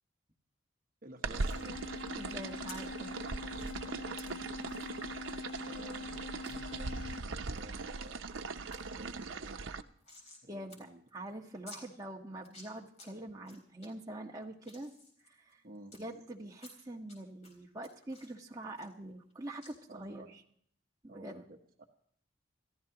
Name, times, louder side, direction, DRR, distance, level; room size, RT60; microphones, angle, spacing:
voice 1, 1.0-1.9 3.9-4.4 5.6-8.4 8.7-9.6 10.4-11.1 15.6-15.9 19.9-20.3 21.1-21.6, right 1 dB, 45° right, 3 dB, 1.0 m, -53 dB
sound 1, 1.2-9.8, right 3 dB, 80° right, 0.7 m, -40 dB
sound 2, 1.3-1.6 2.7-2.8 3.5-3.7 4.2-4.3 4.7-4.9 5.3-5.4 5.6-5.7 6.4-6.6 7.1-7.6 8.0-8.4 8.7-8.8 9.1-10.4 10.7-10.8 11.1-11.2 11.7-11.8 12.4-13.1 13.4-13.9 14.3-16.0 16.6-17.2 17.4-19.3 19.6-19.7, left 2 dB, 35° left, 4.1 m, -53 dB
sound 3, 1.5-7.5, left 4 dB, 75° left, 1.3 m, -45 dB
voice 2, 2.1-3.1 10.5-14.9 15.3-15.6 15.9-20.4 21.0-21.4, right 1 dB, 20° right, -1 dB, 1.4 m, -45 dB
28.0 x 14.0 x 3.0 m, 0.64 s
head